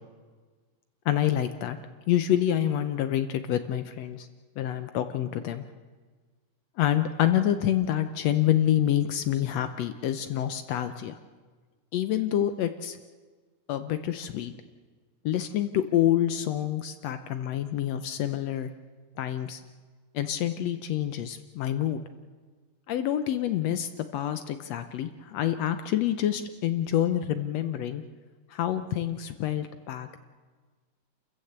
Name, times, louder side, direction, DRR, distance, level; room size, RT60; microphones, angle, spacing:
voice 1, 1.1-1.8 2.1-4.3 4.6-5.6 6.8-11.2 11.9-13.0 13.7-14.5 15.3-18.7 19.2-19.6 20.1-22.0 22.9-28.0 28.5-30.2, left 11 dB, 70° left, 10 dB, 1.7 m, -27 dB
28.0 x 14.5 x 8.0 m, 1.5 s
omnidirectional pair, 3.4 m